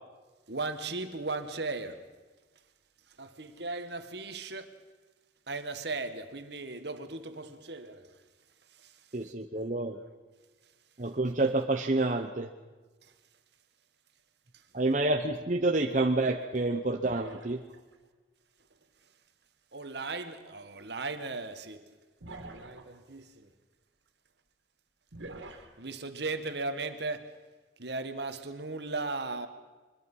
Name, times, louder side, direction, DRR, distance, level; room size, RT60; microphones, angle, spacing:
voice 1, 0.5-2.0 3.2-4.7 5.5-8.1 19.7-21.8 22.4-23.5 25.8-27.3 27.8-29.5, right 3 dB, 65° right, 1.7 m, -37 dB
voice 2, 9.1-10.0 11.0-12.5 14.7-17.6, right 2 dB, 40° right, 1.0 m, -28 dB
sound 1, 17.0-17.9 20.4-20.5 22.2-22.9 25.1-25.7, right 2 dB, 90° right, 2.6 m, -45 dB
24.0 x 22.0 x 5.6 m
head